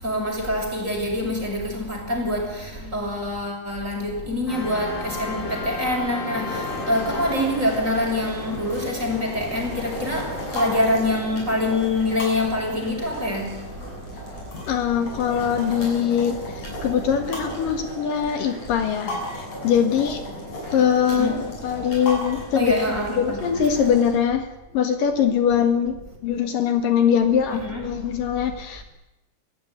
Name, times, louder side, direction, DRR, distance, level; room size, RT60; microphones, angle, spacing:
voice 1, 0.0-13.7 14.3-14.5 15.5-15.9 16.4-16.5 21.1-21.5 22.5-23.5 27.5-28.1, left 1 dB, 20° right, 6.6 m, -25 dB
sound 1, 4.5-10.8, left 2 dB, 30° left, 8.2 m, -34 dB
sound 2, 6.5-24.2, left 1 dB, 45° left, 8.3 m, -36 dB
voice 2, 14.7-16.4 16.8-20.2 20.7-22.7 23.2-24.5 24.7-28.8, left 8 dB, 70° left, 3.4 m, -22 dB
26.5 x 16.5 x 9.7 m
omnidirectional pair, 4.2 m